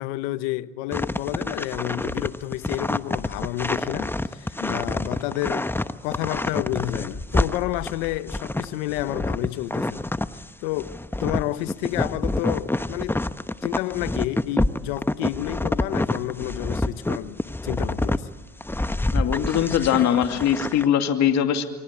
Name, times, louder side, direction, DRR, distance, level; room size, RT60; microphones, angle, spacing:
voice 1, 0.0-5.7 6.0-10.0 10.3-10.9 11.2-13.2 13.6-17.4 17.6-18.3, left 16 dB, 85° left, 1.1 m, -30 dB
sound 1, 0.9-10.4 10.8-18.2 18.6-20.9, left 1 dB, 5° left, 1.1 m, -27 dB
voice 2, 19.1-21.6, left 9 dB, 60° left, 2.5 m, -21 dB
29.0 x 23.5 x 8.7 m
supercardioid pair, 80°, 30 cm